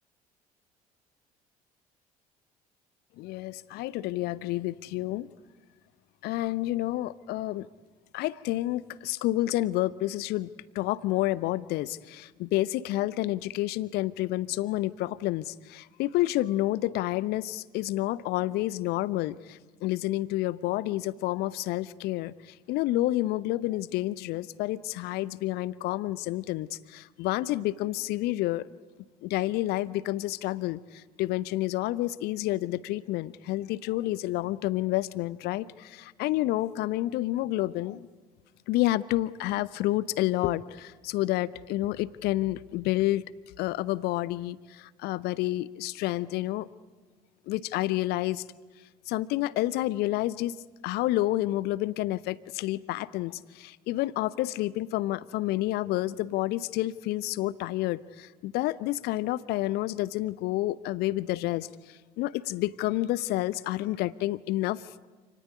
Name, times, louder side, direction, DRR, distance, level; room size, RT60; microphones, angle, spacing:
voice 1, 3.2-5.3 6.2-7.7 8.1-10.5 10.7-22.3 22.7-28.7 29.2-30.8 31.2-38.1 38.7-43.2 43.6-46.7 47.5-48.4 49.1-50.6 50.8-61.7 62.2-65.1, left 16 dB, 55° left, 19 dB, 0.8 m, -29 dB
28.5 x 18.5 x 9.7 m, 1.3 s
figure-of-eight pair, 55°, 20 cm